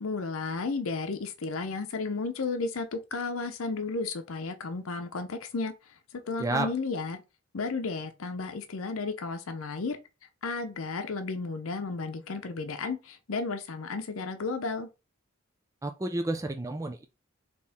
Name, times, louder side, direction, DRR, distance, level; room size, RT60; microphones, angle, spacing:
voice 1, 0.0-5.7 6.1-7.2 7.5-10.0 10.4-14.9, left 4 dB, 90° left, 0.6 m, -33 dB
voice 2, 15.8-17.1, right 2 dB, 15° right, 0.4 m, -30 dB
4.4 x 3.0 x 3.5 m
head